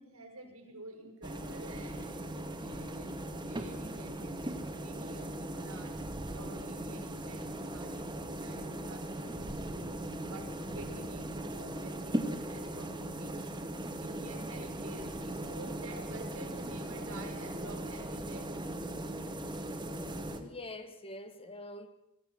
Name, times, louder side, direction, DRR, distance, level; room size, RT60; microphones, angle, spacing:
voice 1, 0.0-5.9 6.3-9.8 10.3-18.7, right 2 dB, 90° right, 5.9 m, -50 dB
sound 1, 1.2-20.4, right 1 dB, 20° right, 2.0 m, -39 dB
voice 2, 20.3-21.9, left 2 dB, 25° left, 1.8 m, -45 dB
23.0 x 15.5 x 7.5 m
head